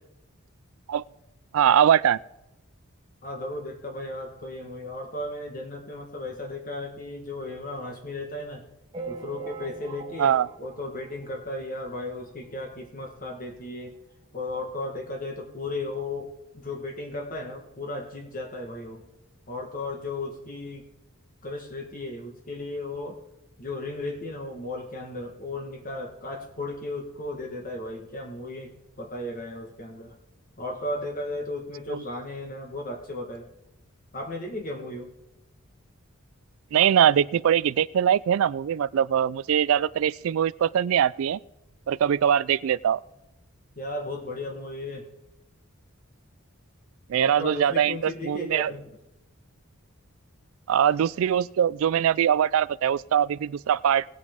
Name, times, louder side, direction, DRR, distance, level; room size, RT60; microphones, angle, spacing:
voice 1, 1.5-2.2 10.2-10.5 31.9-32.0 36.7-41.4 41.9-43.0 47.1-48.7 50.7-54.0, right 9 dB, 65° right, 19 dB, 0.3 m, -22 dB
voice 2, 3.2-8.6 9.1-13.9 14.3-19.0 19.5-20.8 21.4-23.2 23.6-28.7 29.0-30.1 30.6-33.4 34.1-35.1 43.8-45.1 47.2-48.9, left 2 dB, 40° left, 3 dB, 1.4 m, -35 dB
sound 1, 8.9-11.8 12.3-12.4 12.5-12.7 13.0-13.1 14.0-14.1 14.5-14.6, right 4 dB, 25° right, 1.4 m, -41 dB
18.5 x 8.5 x 3.6 m, 0.91 s
head